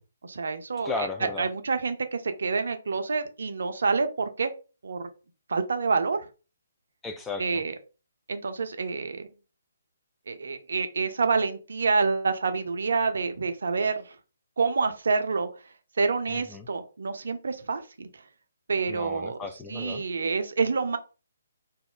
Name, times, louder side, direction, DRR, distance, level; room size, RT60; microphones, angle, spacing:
voice 1, 0.2-0.9 1.4-4.5 4.8-5.1 5.5-6.2 7.4-7.7 8.3-9.3 10.3-14.1 14.6-15.5 16.0-18.1 18.7-19.4 19.7-21.0, right 4 dB, 60° right, 8 dB, 0.4 m, -27 dB
voice 2, 0.8-1.5 7.0-7.4 16.3-16.7 18.9-20.0, left 3 dB, 10° left, 4 dB, 0.3 m, -35 dB
2.4 x 2.1 x 3.7 m, 0.33 s
figure-of-eight pair, 135°, 0 cm